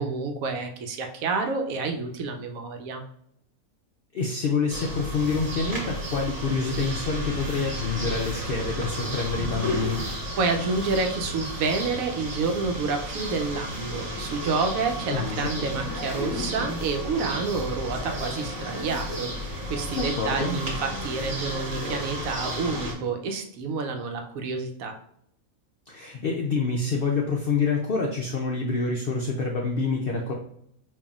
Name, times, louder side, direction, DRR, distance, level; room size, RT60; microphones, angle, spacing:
voice 1, 0.0-3.0 10.4-24.9, right 4 dB, 75° right, 4 dB, 1.0 m, -29 dB
voice 2, 4.1-10.0 15.1-15.8 20.0-20.6 25.9-30.3, left 4 dB, 70° left, 0 dB, 0.5 m, -27 dB
sound 1, 4.7-22.9, equal, 40° right, 1.1 m, -33 dB
5.4 x 2.6 x 2.4 m, 0.73 s
omnidirectional pair, 1.5 m